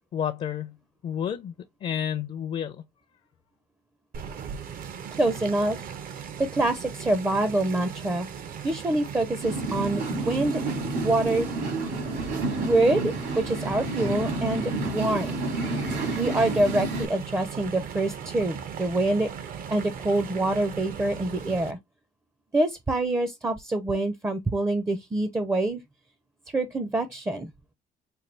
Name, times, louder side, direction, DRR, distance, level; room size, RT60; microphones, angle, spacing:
voice 1, 0.1-0.8 1.0-1.5 1.8-2.8, left 9 dB, 45° left, 0.5 m, -30 dB
sound 1, 4.1-21.7, right 7 dB, 55° right, 0.7 m, -38 dB
voice 2, 5.2-5.9 6.4-8.3 8.6-10.6 11.0-11.5 12.6-15.4 16.2-19.3 19.7-21.8 22.5-25.8 26.5-27.5, right 2 dB, 15° right, 0.5 m, -26 dB
sound 2, 9.4-17.1, right 2 dB, 75° right, 2.4 m, -30 dB
4.4 x 2.3 x 3.2 m
cardioid pair, 110°, 17 cm